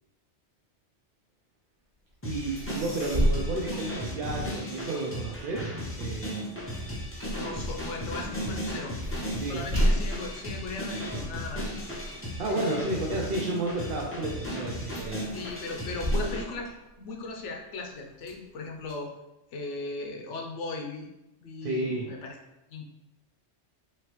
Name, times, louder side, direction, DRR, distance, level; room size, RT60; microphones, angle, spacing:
sound 1, 2.2-16.4, equal, 15° left, 0.6 m, -36 dB
voice 1, 2.2-5.7 6.0-6.5 9.4-9.6 12.4-15.3 21.6-22.1, right 2 dB, 60° right, -3 dB, 0.7 m, -32 dB
sound 2, 2.6-4.7 5.1-13.8 14.3-14.7 15.0-17.4 17.9-18.9, equal, 40° right, 1.7 m, -33 dB
voice 2, 7.3-8.9 9.5-11.7 12.5-13.0 15.3-16.7 17.0-19.1 19.5-21.1 21.4-22.3 22.7-22.9, left 3 dB, 90° left, 2 dB, 1.0 m, -37 dB
3.8 x 3.0 x 3.0 m, 0.96 s
omnidirectional pair, 1.2 m